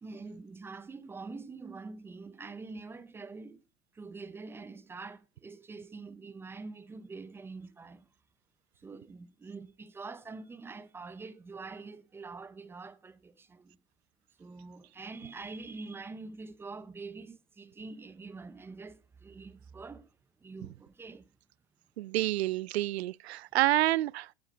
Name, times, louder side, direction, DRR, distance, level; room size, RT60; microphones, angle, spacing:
voice 1, 0.0-3.6 3.9-8.1 8.8-13.8 14.4-20.1 20.4-21.3, right 4 dB, 10° right, 0.6 m, -45 dB
voice 2, 22.0-24.3, right 16 dB, 90° right, 0.5 m, -28 dB
13.0 x 8.2 x 5.2 m
supercardioid pair, 155°, 31 cm